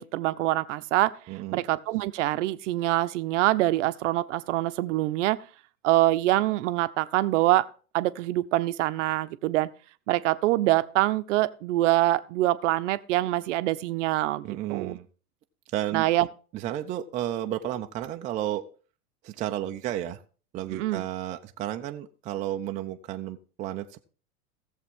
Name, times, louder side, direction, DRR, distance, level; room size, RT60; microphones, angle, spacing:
voice 1, 0.0-1.1 1.5-5.4 5.8-7.6 7.9-9.7 10.1-14.4 14.7-15.0 15.9-16.3 20.7-21.0, right 16 dB, 50° right, 0.7 m, -25 dB
voice 2, 1.3-1.6 14.4-15.1 15.7-16.1 16.5-18.6 19.2-20.2 20.5-24.0, right 12 dB, 20° right, 0.4 m, -32 dB
16.0 x 7.3 x 3.6 m
figure-of-eight pair, 90°, 46 cm